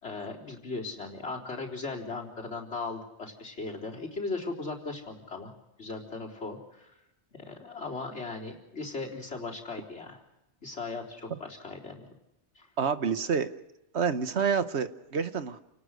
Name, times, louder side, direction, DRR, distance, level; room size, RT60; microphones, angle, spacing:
voice 1, 0.0-5.5 5.8-6.9 7.3-10.2 10.6-12.1 12.6-12.7, left 3 dB, 85° left, -1 dB, 4.3 m, -38 dB
voice 2, 12.8-13.6 13.9-15.6, right 6 dB, 75° right, 10 dB, 1.5 m, -28 dB
29.0 x 19.0 x 6.5 m, 0.91 s
omnidirectional pair, 1.1 m